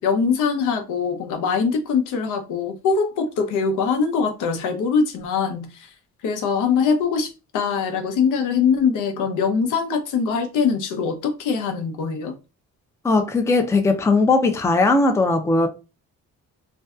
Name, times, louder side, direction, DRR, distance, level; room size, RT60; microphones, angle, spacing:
voice 1, 0.0-5.7 6.2-12.3, left 5 dB, 85° left, 0.6 m, -22 dB
voice 2, 13.0-15.7, left 3 dB, 10° left, 0.4 m, -18 dB
2.5 x 2.2 x 2.3 m
cardioid pair, 90°, 30 cm